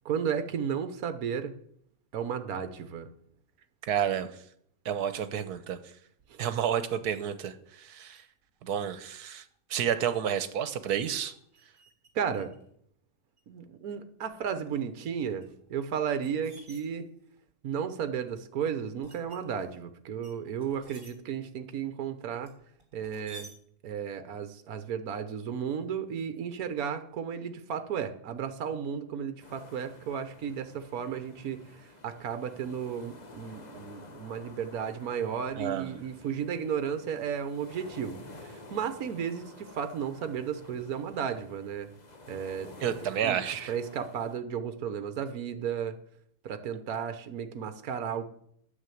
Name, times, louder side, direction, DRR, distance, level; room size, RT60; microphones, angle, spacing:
voice 1, 0.0-1.5 2.1-3.1 6.3-6.4 12.1-12.5 13.5-17.1 17.6-22.5 22.9-23.5 23.8-41.9 42.3-42.7 43.2-43.4 43.7-46.0 46.4-48.2, right 7 dB, 70° right, 10 dB, 1.4 m, -34 dB
voice 2, 3.8-4.3 4.8-5.9 6.4-8.2 8.6-9.4 9.7-11.3 35.6-36.0 42.8-43.7, right 9 dB, 85° right, 12 dB, 1.4 m, -30 dB
sound 1, 7.1-7.3 8.1-8.3 8.7-9.1 9.5-9.6 10.4-10.5 10.7-12.1 12.3-12.7 13.4-13.5 14.3-14.7 15.4-17.4 18.0-18.4 19.0-19.7 20.2-21.1 22.5-23.5, right 1 dB, 30° right, 3.4 m, -53 dB
sound 2, 29.4-44.3, left 2 dB, 30° left, 1.2 m, -51 dB
10.0 x 7.2 x 9.2 m, 0.69 s
omnidirectional pair, 1.6 m